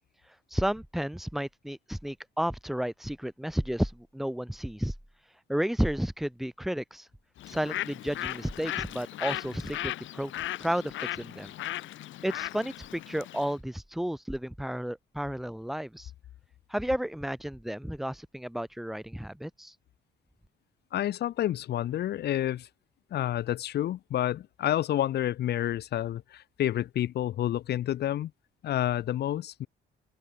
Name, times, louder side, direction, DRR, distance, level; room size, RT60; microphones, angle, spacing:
voice 1, 0.3-4.9 5.5-7.1 7.5-10.3 10.6-11.5 12.2-16.1 16.7-19.7, equal, ahead, 0.5 m, -32 dB
Bird, 7.4-13.5, left 14 dB, 75° left, 1.1 m, -37 dB
voice 2, 20.9-22.7 23.1-28.3 28.6-29.7, left 12 dB, 55° left, 0.5 m, -29 dB
open air
cardioid pair, 90°, 20 cm